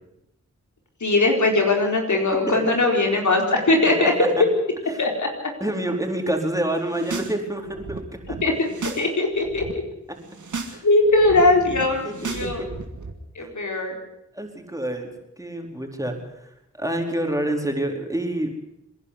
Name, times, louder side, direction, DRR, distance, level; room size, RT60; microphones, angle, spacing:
voice 1, 1.0-4.1 5.0-5.3 8.4-8.5 9.0-9.6 10.8-12.6 13.3-14.0, left 2 dB, 75° left, 2 dB, 4.4 m, -20 dB
voice 2, 5.6-8.4 10.7-10.9 12.0-12.3 12.6-12.7 13.4-13.5 14.3-15.1 15.4-18.5, right 1 dB, 10° right, 2 dB, 4.4 m, -27 dB
sound 1, 6.8-7.3 7.6-9.1 9.3-9.7 10.2-10.8 11.0-13.1, right 4 dB, 85° right, 2.8 m, -34 dB
26.5 x 11.0 x 9.8 m, 0.83 s
cardioid pair, 45°, 29 cm